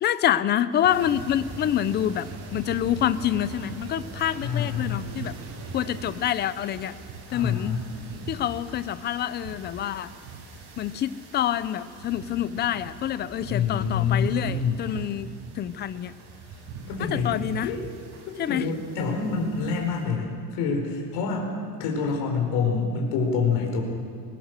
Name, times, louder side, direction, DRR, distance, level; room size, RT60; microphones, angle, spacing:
voice 1, 0.0-5.4 5.7-6.9 7.3-7.8 8.3-10.1 10.8-16.1 17.1-17.7 18.4-18.7, left 11 dB, 25° left, 14 dB, 0.5 m, -27 dB
sound 1, 0.7-20.0, right 3 dB, 75° right, 7.3 m, -44 dB
sound 2, 0.9-6.1, right 3 dB, 45° right, 2.4 m, -40 dB
voice 2, 4.4-5.0 7.3-7.8 13.5-14.8 16.9-17.8 18.3-21.5 21.8-23.8, left 5 dB, 65° left, 0 dB, 4.6 m, -27 dB
21.5 x 20.5 x 6.7 m, 2.2 s
cardioid pair, 180°, 39 cm